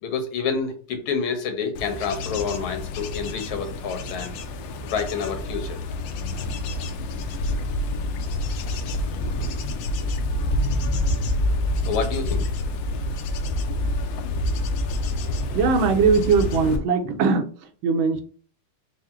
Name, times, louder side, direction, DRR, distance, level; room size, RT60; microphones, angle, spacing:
voice 1, 0.0-4.3 4.9-5.8 11.8-12.5, left 5 dB, 85° left, 6 dB, 1.8 m, -28 dB
Bird / Insect / Wind, 1.7-16.8, left 1 dB, 70° left, 1.2 m, -27 dB
voice 2, 15.5-18.2, right 5 dB, 75° right, 6 dB, 1.4 m, -20 dB
4.8 x 2.1 x 4.2 m, 0.42 s
omnidirectional pair, 2.3 m